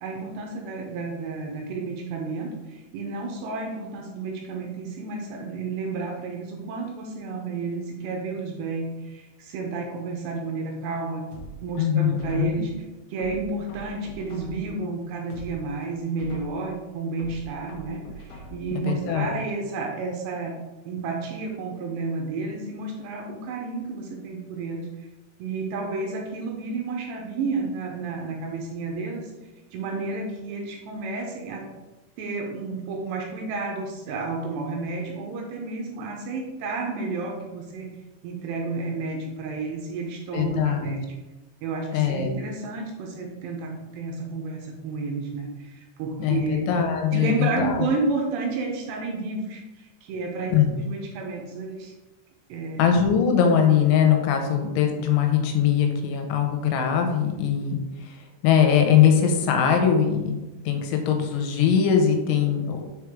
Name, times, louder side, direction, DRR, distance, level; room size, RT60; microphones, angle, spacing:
voice 1, 0.0-11.3 11.6-12.7 13.1-20.6 20.9-25.1 25.4-29.3 29.7-31.6 32.2-37.9 38.2-41.1 41.6-46.6 47.1-51.9 52.5-52.8, right 3 dB, 80° right, 1 dB, 2.7 m, -31 dB
sound 1, 11.3-12.7 13.2-14.8 15.2-16.7 17.2-18.8 19.2-19.3, right 1 dB, 70° left, 2.3 m, -43 dB
voice 2, 11.8-12.7 18.7-19.4 40.3-41.0 41.9-42.4 46.2-47.9 50.5-50.7 52.8-58.2 58.4-60.4 60.7-62.9, left 8 dB, 85° left, 4 dB, 3.3 m, -21 dB
6.6 x 4.7 x 3.5 m, 1.1 s
omnidirectional pair, 5.4 m